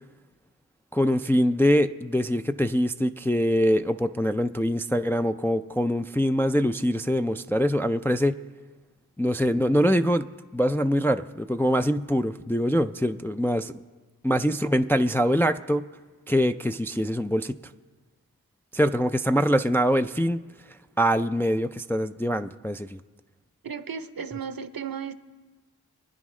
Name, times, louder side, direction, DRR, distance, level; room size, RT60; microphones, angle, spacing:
voice 1, 0.9-8.4 9.2-13.7 14.2-15.9 16.3-17.6 18.7-20.4 21.0-23.0, equal, 5° left, 8 dB, 0.3 m, -24 dB
voice 2, 23.6-25.1, right 7 dB, 65° right, 11 dB, 0.7 m, -34 dB
25.0 x 9.8 x 3.2 m, 1.3 s
wide cardioid pair, 45°, 38 cm